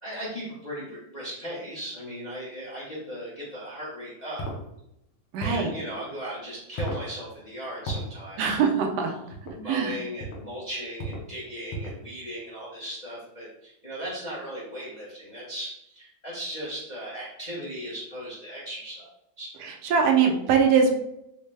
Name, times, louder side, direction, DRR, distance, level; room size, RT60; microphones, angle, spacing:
voice 1, 0.0-4.5 5.4-8.6 9.5-19.1 19.4-19.5, equal, 35° left, -7 dB, 0.6 m, -37 dB
sound 1, 4.4-4.6 5.4-5.7 6.8-7.1 7.9-8.1 9.3-9.6 10.2-10.5 11.0-11.3 11.7-12.0, right 1 dB, 90° left, 1.6 m, -33 dB
voice 2, 5.3-5.7 8.4-9.1 9.7-10.0 19.9-20.9, right 6 dB, 70° right, 2 dB, 1.1 m, -21 dB
4.3 x 2.1 x 3.2 m, 0.82 s
omnidirectional pair, 2.1 m